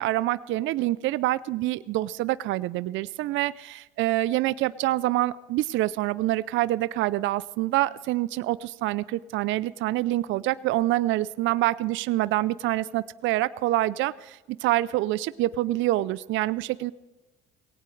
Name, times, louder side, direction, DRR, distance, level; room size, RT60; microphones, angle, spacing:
voice 1, 0.0-16.9, right 16 dB, 65° right, 17 dB, 0.5 m, -26 dB
19.5 x 17.5 x 3.3 m, 1.1 s
supercardioid pair, 75°, 21 cm